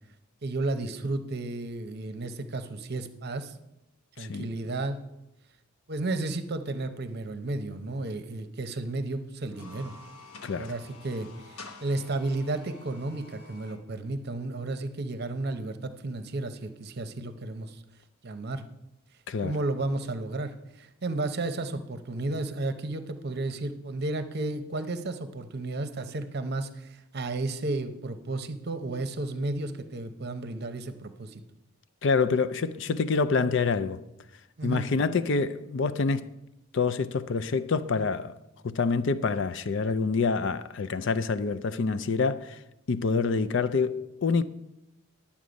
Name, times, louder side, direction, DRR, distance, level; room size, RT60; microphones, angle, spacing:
voice 1, 0.4-3.6 4.2-5.0 5.9-9.9 10.5-17.8 18.2-18.6 19.4-31.4 34.6-34.9, right 2 dB, 50° right, 0.7 m, -33 dB
voice 2, 4.2-4.5 10.4-10.7 19.3-19.6 32.0-34.0 34.6-36.3 36.7-38.4 38.6-42.6 42.9-44.4, left 4 dB, 60° left, 0.5 m, -27 dB
sound 1, 9.4-13.8, left 3 dB, 90° left, 1.1 m, -49 dB
11.0 x 7.3 x 5.1 m
head